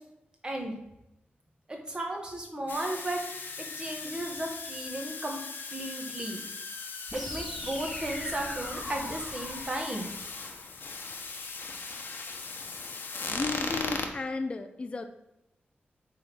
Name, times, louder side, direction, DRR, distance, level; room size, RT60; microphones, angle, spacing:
voice 1, 0.4-0.7 1.7-5.4 5.7-6.4 7.1-10.1, right 1 dB, 20° right, 1 dB, 1.4 m, -35 dB
sound 1, 2.7-14.1, left 4 dB, 65° left, 1.0 m, -38 dB
sound 2, 7.1-11.1, equal, ahead, 1.4 m, -41 dB
voice 2, 13.3-15.1, left 3 dB, 30° left, 7 dB, 0.5 m, -34 dB
8.6 x 3.6 x 6.0 m, 0.89 s
wide cardioid pair, 160°, 4 cm